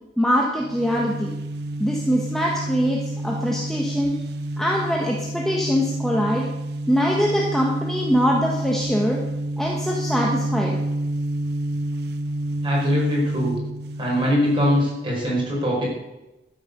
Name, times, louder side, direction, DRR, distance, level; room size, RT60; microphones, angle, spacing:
voice 1, 0.2-1.3 1.8-4.2 4.6-6.5 6.9-9.2 9.6-10.8, equal, ahead, -2 dB, 1.2 m, -23 dB
sound 1, 0.6-15.2, right 1 dB, 55° right, 0.7 m, -29 dB
voice 2, 12.6-13.6 14.0-16.1, equal, 25° right, -3 dB, 5.1 m, -22 dB
12.5 x 9.7 x 6.7 m, 0.99 s
head